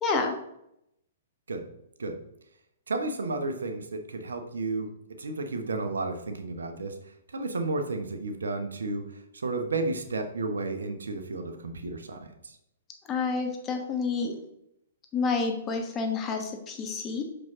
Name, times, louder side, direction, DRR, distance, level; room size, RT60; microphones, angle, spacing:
voice 1, 0.0-0.4 13.1-14.4 15.1-17.2, left 4 dB, 25° left, 3 dB, 1.3 m, -29 dB
voice 2, 2.9-12.6, right 3 dB, 80° right, 6 dB, 0.9 m, -32 dB
6.0 x 5.2 x 3.6 m, 0.78 s
hypercardioid pair, 120°, 0 cm